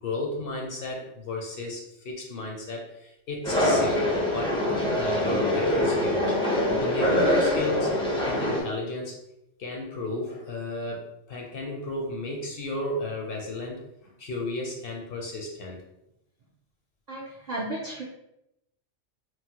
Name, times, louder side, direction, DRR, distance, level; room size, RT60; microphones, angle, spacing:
voice 1, 0.0-6.4 6.7-7.9 8.2-9.2 9.6-15.8, left 2 dB, 60° left, 0 dB, 0.6 m, -34 dB
sound 1, 3.4-8.6, left 1 dB, 10° left, 0.4 m, -24 dB
voice 2, 17.1-18.0, right 1 dB, 65° right, -3 dB, 0.4 m, -34 dB
3.0 x 2.0 x 2.8 m, 0.85 s
omnidirectional pair, 1.2 m